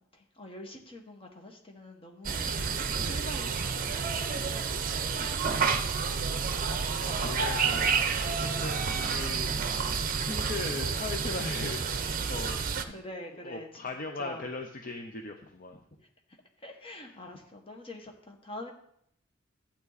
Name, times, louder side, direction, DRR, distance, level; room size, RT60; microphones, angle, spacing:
voice 1, 0.1-2.7 3.1-4.7 12.9-13.9 14.2-14.4 16.3-18.7, left 1 dB, 25° left, 2 dB, 1.5 m, -45 dB
sound 1, 2.2-12.8, right 5 dB, 45° right, 0.7 m, -30 dB
voice 2, 7.2-12.6 13.4-15.8, left 3 dB, 45° left, 4 dB, 0.7 m, -40 dB
12.5 x 8.3 x 4.1 m, 0.71 s
head